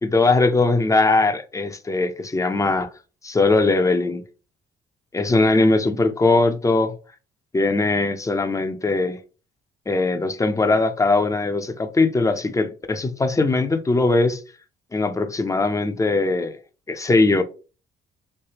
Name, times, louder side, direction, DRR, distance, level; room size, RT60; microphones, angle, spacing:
voice 1, 0.0-2.9 3.2-4.2 5.1-7.0 7.5-9.2 9.9-14.4 14.9-16.6 16.9-17.4, left 3 dB, 15° left, 0.5 m, -20 dB
3.3 x 3.1 x 2.9 m
cardioid pair, 90°, 20 cm